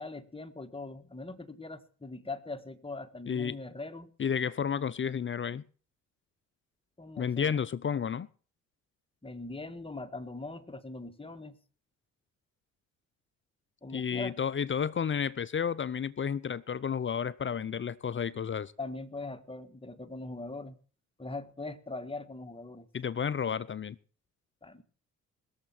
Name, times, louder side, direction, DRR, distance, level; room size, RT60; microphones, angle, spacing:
voice 1, 0.0-4.1 7.0-7.6 9.2-11.6 13.8-14.3 18.8-20.8 21.2-22.9 24.6-24.8, left 2 dB, 15° left, 1.8 m, -41 dB
voice 2, 4.2-5.6 7.2-8.3 13.9-18.7 22.9-24.0, left 7 dB, 30° left, 0.6 m, -31 dB
20.0 x 7.4 x 5.9 m
hypercardioid pair, 50°, 38 cm